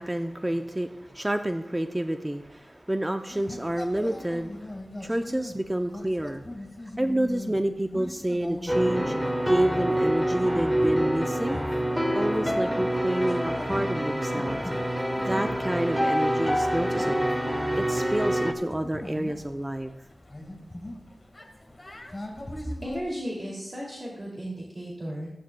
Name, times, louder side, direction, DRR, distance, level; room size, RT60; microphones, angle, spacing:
voice 1, 0.0-4.7 5.0-6.4 7.0-9.1 9.5-11.6 12.1-14.6 15.2-17.4 17.8-19.9, right 1 dB, 15° right, 7 dB, 0.5 m, -29 dB
sound 1, 3.3-23.0, left 1 dB, 30° left, 1.7 m, -42 dB
sound 2, 8.7-18.5, equal, ahead, 1.0 m, -26 dB
voice 2, 22.8-25.3, equal, 30° right, -4 dB, 2.5 m, -35 dB
15.0 x 9.2 x 2.2 m, 0.93 s
cardioid pair, 45°, 0 cm